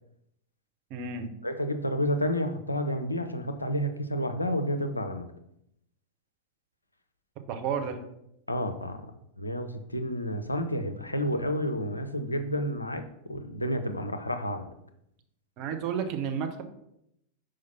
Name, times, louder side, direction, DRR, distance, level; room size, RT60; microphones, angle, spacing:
voice 1, 0.9-1.3 7.5-8.0 15.6-16.6, right 6 dB, 40° right, 5 dB, 0.9 m, -31 dB
voice 2, 1.4-5.3 8.5-9.0 9.4-14.7, equal, 85° left, 8 dB, 0.5 m, -30 dB
5.7 x 4.9 x 4.2 m, 0.79 s
figure-of-eight pair, 90°, 0 cm